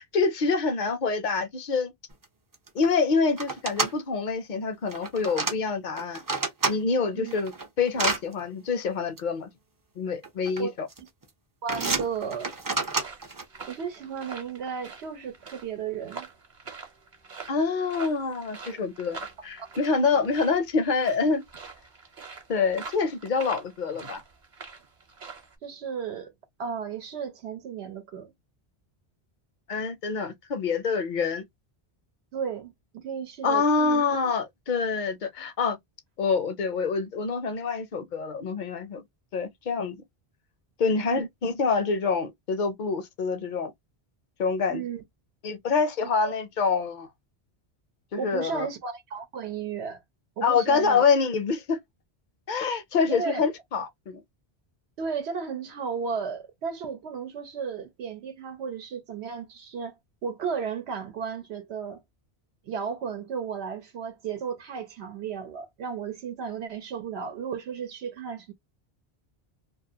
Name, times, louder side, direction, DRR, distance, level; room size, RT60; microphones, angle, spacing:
voice 1, 0.0-1.9 2.7-6.2 6.7-7.5 7.8-9.5 10.0-10.9 17.5-21.4 22.5-24.2 29.7-31.4 33.4-35.8 36.2-39.0 39.3-40.0 40.8-43.7 44.4-44.8 45.4-47.1 48.1-48.7 50.4-51.8 52.5-54.2, left 5 dB, 60° left, 0.6 m, -26 dB
sound 1, 2.2-2.3 2.5-2.9 3.4-3.9 4.9-5.5 6.0-6.8 7.3-8.2 9.2-9.3 10.2-10.6 10.9-11.2 11.7-13.4, right 3 dB, 30° right, 0.4 m, -29 dB
voice 2, 11.6-12.5 13.7-16.3 18.6-18.8 20.1-20.3 25.6-26.3 26.6-28.3 32.3-34.0 41.0-41.3 44.7-45.0 46.2-46.3 48.2-50.0 50.4-51.0 53.1-53.4 55.0-60.0 60.2-62.0 62.6-68.5, right 6 dB, 90° right, 0.9 m, -34 dB
sound 2, 11.7-25.6, right 4 dB, 50° right, 1.0 m, -45 dB
2.4 x 2.2 x 2.7 m
omnidirectional pair, 1.1 m